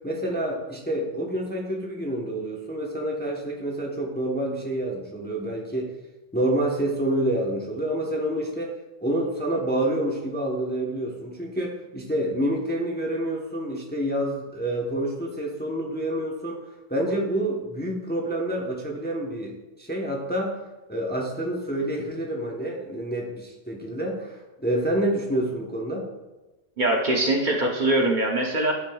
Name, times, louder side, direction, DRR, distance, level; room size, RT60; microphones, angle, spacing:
voice 1, 0.0-5.9 6.3-8.7 9.0-20.6 20.9-26.1, right 1 dB, 10° left, -1 dB, 0.7 m, -28 dB
voice 2, 26.8-28.7, right 1 dB, 50° right, 0 dB, 0.9 m, -22 dB
10.5 x 5.1 x 2.3 m, 1.1 s
omnidirectional pair, 1.1 m